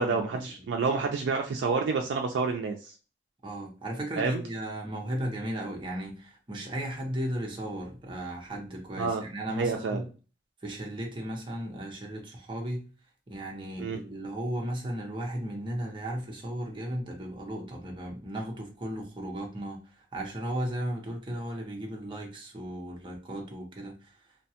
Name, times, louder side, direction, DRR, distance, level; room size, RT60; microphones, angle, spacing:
voice 1, 0.0-2.9 4.2-4.4 9.0-9.2 9.6-10.0 13.8-14.0, right 4 dB, 80° right, 0.3 m, -28 dB
voice 2, 3.4-10.0 10.6-12.9 13.3-24.3, right 1 dB, 25° right, 0.6 m, -35 dB
2.7 x 2.1 x 2.8 m
head